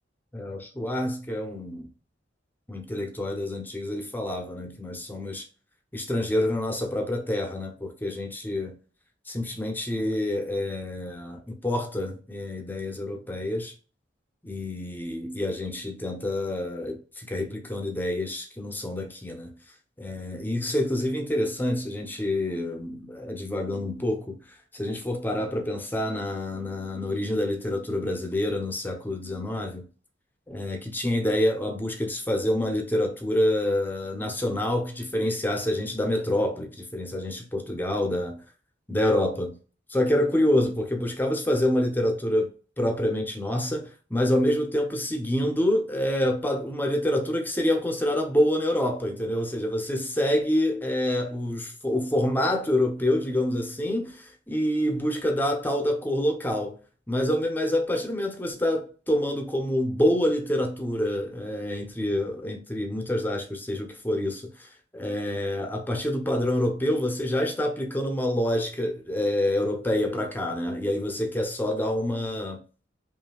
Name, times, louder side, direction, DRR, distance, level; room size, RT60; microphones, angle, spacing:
voice 1, 0.3-1.9 2.7-5.5 5.9-8.8 9.3-13.7 14.4-19.6 20.0-24.4 24.7-29.9 30.5-38.4 38.9-39.6 39.9-42.5 42.8-56.8 57.1-72.6, left 1 dB, 10° left, 0.8 m, -27 dB
5.5 x 2.7 x 2.3 m
head